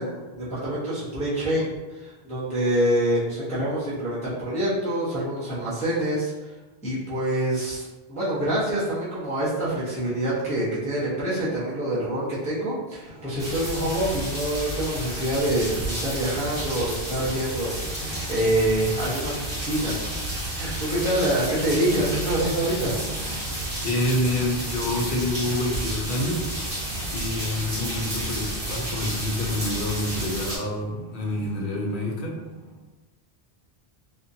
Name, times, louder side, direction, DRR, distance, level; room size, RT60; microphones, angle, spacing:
voice 1, 0.0-6.3 6.8-17.7 18.3-20.1 20.6-23.0 23.4-23.5, right 1 dB, 5° left, -11 dB, 0.7 m, -26 dB
sound 1, 13.0-32.8, equal, 40° right, 0.9 m, -41 dB
sound 2, 13.4-30.6, right 1 dB, 55° right, 1.2 m, -31 dB
voice 2, 23.8-26.4 27.1-32.4, left 1 dB, 60° left, -1 dB, 0.7 m, -27 dB
2.8 x 2.4 x 2.6 m, 1.1 s
omnidirectional pair, 1.1 m